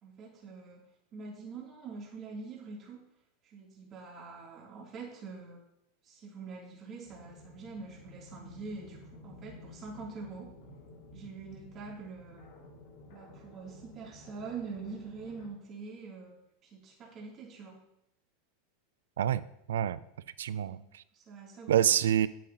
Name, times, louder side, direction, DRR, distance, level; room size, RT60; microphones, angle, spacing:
voice 1, 0.0-0.8 1.1-3.0 3.4-5.6 6.0-10.5 11.1-12.4 13.1-16.3 16.6-17.8 20.6-20.8 21.1-21.8, right 4 dB, 35° right, -4 dB, 3.1 m, -44 dB
sound 1, 7.0-15.5, left 2 dB, 70° left, 2.5 m, -53 dB
voice 2, 19.7-20.0 20.4-21.0 21.7-22.3, right 10 dB, 90° right, 17 dB, 0.4 m, -27 dB
10.0 x 8.5 x 3.0 m, 0.80 s
supercardioid pair, 120°, 0 cm